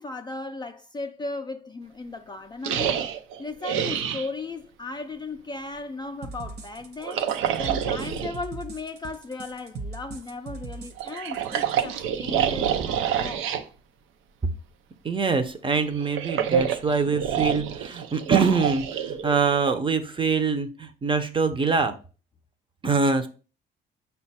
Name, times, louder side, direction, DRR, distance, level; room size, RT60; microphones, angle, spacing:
voice 1, 0.0-3.1 3.4-7.3 7.6-13.5 16.0-16.1, left 3 dB, 20° left, 0.3 m, -36 dB
sound 1, 2.6-4.3 7.0-8.4 11.0-13.6 15.9-19.8, right 9 dB, 85° right, 0.5 m, -27 dB
sound 2, 6.2-11.8, right 3 dB, 55° right, 0.8 m, -39 dB
voice 2, 15.0-22.0 22.8-23.3, right 4 dB, 25° right, 0.6 m, -24 dB
5.5 x 2.3 x 4.1 m
cardioid pair, 90°, 20 cm